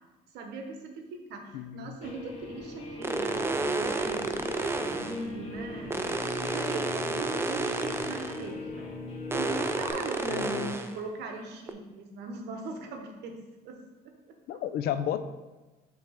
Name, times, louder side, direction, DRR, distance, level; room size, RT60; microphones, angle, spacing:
voice 1, 0.3-8.9 9.3-13.4 13.6-14.6, right 3 dB, 80° right, 4 dB, 1.0 m, -40 dB
voice 2, 1.5-2.0 10.3-10.7 14.5-15.2, left 10 dB, 70° left, 12 dB, 0.4 m, -32 dB
Guitar, 2.0-9.9, left 2 dB, 40° left, 1.8 m, -40 dB
sound 1, 3.0-5.2 5.9-8.5 9.3-10.9 11.7-11.8, right 2 dB, 15° right, 0.4 m, -31 dB
5.9 x 3.4 x 4.9 m, 1.2 s
cardioid pair, 110°, 17 cm